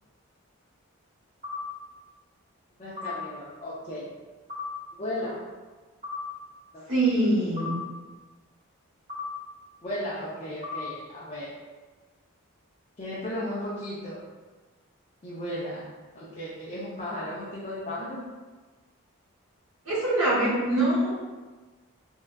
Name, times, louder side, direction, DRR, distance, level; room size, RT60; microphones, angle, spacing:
sound 1, 1.4-1.6 3.0-3.1 4.5-4.7 6.0-6.2 7.6-7.7 9.1-9.3 10.6-10.8, left 4 dB, 40° right, 1.1 m, -34 dB
voice 1, 2.8-4.1 5.0-5.4 6.7-6.8 9.8-11.5 13.0-14.2 15.2-15.8 16.1-18.2, left 1 dB, 30° left, -8 dB, 0.4 m, -35 dB
voice 2, 6.9-7.8 19.8-21.2, right 1 dB, 70° right, -7 dB, 1.1 m, -24 dB
3.6 x 2.2 x 2.2 m, 1.3 s
head